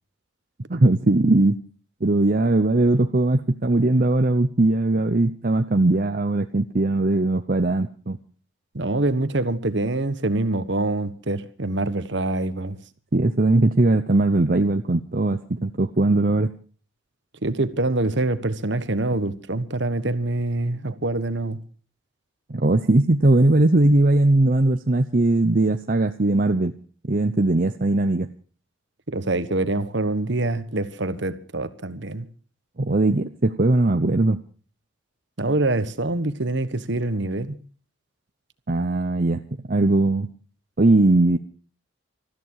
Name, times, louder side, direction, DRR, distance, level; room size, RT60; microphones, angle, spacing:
voice 1, 0.7-1.6 2.0-8.2 13.1-16.5 22.5-26.7 27.1-28.3 32.8-34.4 38.7-39.4 39.7-40.3 40.8-41.4, right 2 dB, 45° right, 0.8 m, -19 dB
voice 2, 8.7-12.8 17.4-21.6 29.1-32.3 35.4-37.6, right 2 dB, 60° right, 1.3 m, -25 dB
20.0 x 14.0 x 4.7 m
head